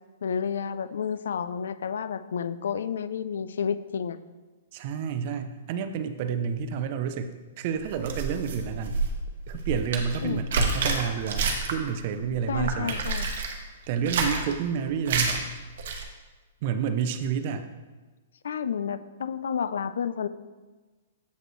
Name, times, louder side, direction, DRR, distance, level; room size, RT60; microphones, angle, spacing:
voice 1, 0.2-4.2 10.2-10.4 12.5-13.3 18.4-20.3, left 7 dB, 80° left, 14 dB, 0.3 m, -30 dB
voice 2, 4.7-9.0 9.5-13.0 13.9-15.4 16.6-17.7, right 7 dB, 40° right, 9 dB, 0.4 m, -30 dB
sound 1, 7.8-11.9 12.2-13.5 13.9-14.5 15.0-15.4 15.7-16.0, right 4 dB, 60° right, 0.9 m, -29 dB
7.8 x 5.2 x 3.1 m, 1.3 s
hypercardioid pair, 165°, 0 cm